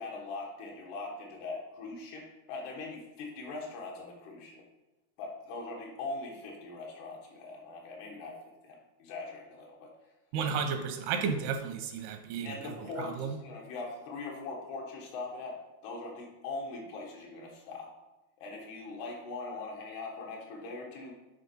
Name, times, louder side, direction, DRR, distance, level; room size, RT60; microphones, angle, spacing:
voice 1, 0.0-4.6 5.2-9.9 12.4-17.9 18.4-21.2, left 3 dB, 90° left, -1 dB, 3.6 m, -41 dB
voice 2, 10.3-12.7 13.0-13.4, right 6 dB, 85° right, 6 dB, 2.8 m, -33 dB
9.6 x 4.1 x 5.4 m, 1.1 s
omnidirectional pair, 4.5 m